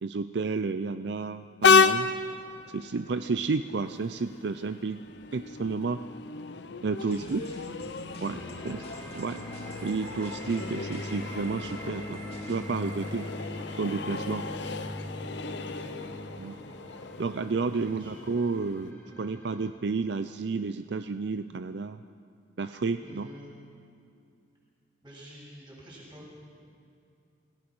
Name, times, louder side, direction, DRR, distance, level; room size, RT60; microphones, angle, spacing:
voice 1, 0.0-2.1 2.7-5.0 5.3-6.0 6.8-7.4 8.2-8.8 9.1-9.4 9.8-13.3 13.8-14.4 16.4-16.6 17.2-22.0 22.6-23.3, right 4 dB, 65° right, 10 dB, 0.5 m, -31 dB
Train, 1.6-18.9, left 5 dB, 70° left, 0.8 m, -32 dB
voice 2, 7.0-7.8 15.6-16.0 17.6-18.1 23.0-23.5 25.0-26.4, equal, 25° right, -5 dB, 7.9 m, -48 dB
sound 1, 7.1-12.7, left 2 dB, 30° left, 2.5 m, -51 dB
sound 2, 8.3-19.7, equal, 10° left, 4.2 m, -41 dB
27.0 x 17.0 x 6.2 m, 2.4 s
head